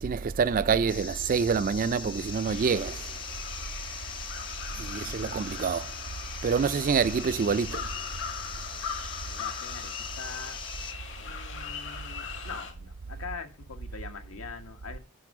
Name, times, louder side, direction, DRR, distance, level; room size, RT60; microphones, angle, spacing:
voice 1, 0.0-3.0 4.8-5.9 6.4-7.9, right 6 dB, 40° right, 0.3 m, -26 dB
sound 1, 0.9-10.9, left 5 dB, 25° left, 0.7 m, -42 dB
sound 2, 2.0-12.7, left 7 dB, 60° left, 2.0 m, -40 dB
voice 2, 4.7-5.7 9.2-10.6 11.2-15.0, left 5 dB, 75° left, 1.5 m, -43 dB
10.5 x 5.3 x 4.8 m
head